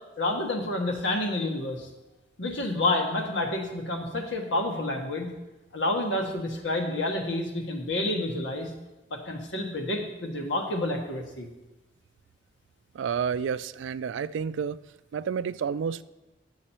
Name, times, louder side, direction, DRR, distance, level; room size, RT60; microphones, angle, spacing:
voice 1, 0.2-1.9 2.4-5.3 5.7-8.7 9.1-11.5, left 2 dB, 85° left, 2 dB, 1.4 m, -29 dB
voice 2, 12.9-14.8 15.1-16.0, right 7 dB, 90° right, 15 dB, 0.3 m, -30 dB
10.0 x 6.3 x 4.3 m, 1.0 s
head